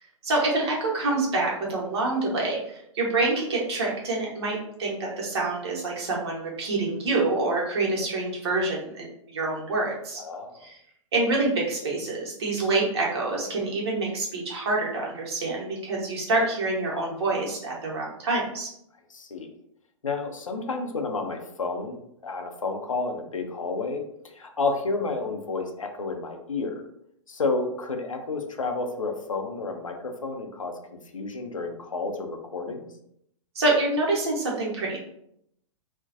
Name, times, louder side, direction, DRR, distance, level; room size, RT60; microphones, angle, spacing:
voice 1, 0.2-10.2 10.6-10.8 11.1-18.7 33.5-35.0, right 2 dB, 50° right, -3 dB, 0.9 m, -26 dB
voice 2, 10.2-10.6 19.1-19.5 20.0-22.0 22.2-26.8 27.3-30.7 31.1-32.9, left 3 dB, 75° left, 4 dB, 0.5 m, -30 dB
2.4 x 2.1 x 2.5 m, 0.74 s
figure-of-eight pair, 110°, 17 cm